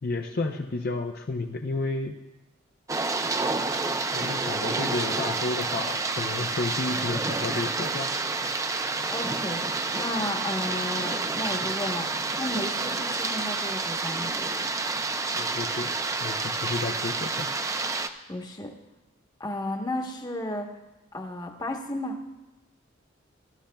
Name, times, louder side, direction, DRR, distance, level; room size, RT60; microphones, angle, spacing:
voice 1, 0.0-2.1 4.1-8.1 15.4-15.9 16.2-17.5, left 3 dB, 50° left, 3 dB, 0.6 m, -31 dB
sound 1, 2.9-18.1, right 3 dB, 15° right, 0.4 m, -29 dB
voice 2, 9.1-12.1 12.4-14.3 18.3-18.7 19.4-20.7 21.1-22.2, left 1 dB, 20° left, 3 dB, 1.0 m, -33 dB
18.0 x 12.0 x 2.3 m, 1.1 s
head